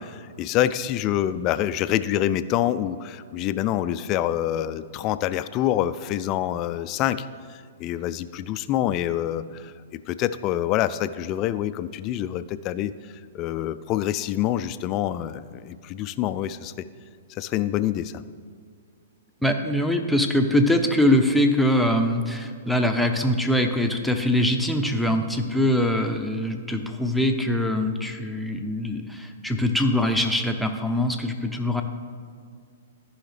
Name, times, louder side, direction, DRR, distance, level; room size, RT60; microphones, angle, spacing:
voice 1, 0.0-12.9 13.3-16.7 17.3-18.2, left 12 dB, 35° left, 13 dB, 0.3 m, -26 dB
voice 2, 19.4-31.8, left 1 dB, ahead, 5 dB, 0.7 m, -23 dB
13.5 x 5.5 x 3.4 m, 2.1 s
hypercardioid pair, 115°, 0 cm